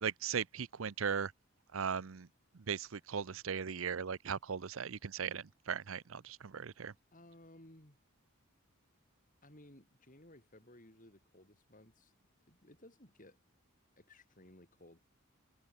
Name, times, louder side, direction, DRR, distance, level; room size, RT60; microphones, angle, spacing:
voice 1, 0.0-1.3 1.7-2.3 2.5-6.9, right 6 dB, 75° right, 0.7 m, -38 dB
voice 2, 7.1-8.0 9.4-12.1 12.5-13.4 14.0-15.0, left 1 dB, 40° left, 5.4 m, -59 dB
head